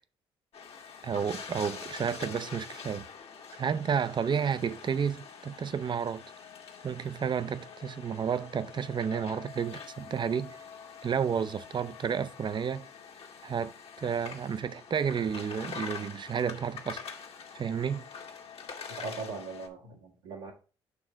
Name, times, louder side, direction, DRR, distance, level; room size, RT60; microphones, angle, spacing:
sound 1, 0.5-19.7, left 6 dB, 55° left, 1.3 m, -45 dB
voice 1, 1.0-3.1 3.6-6.2 6.8-10.6 11.0-12.9 13.4-17.0 17.5-18.1, right 7 dB, 40° right, 0.6 m, -31 dB
voice 2, 18.9-20.5, right 3 dB, 90° right, 1.9 m, -40 dB
6.8 x 3.1 x 5.7 m
hypercardioid pair, 55°, 12 cm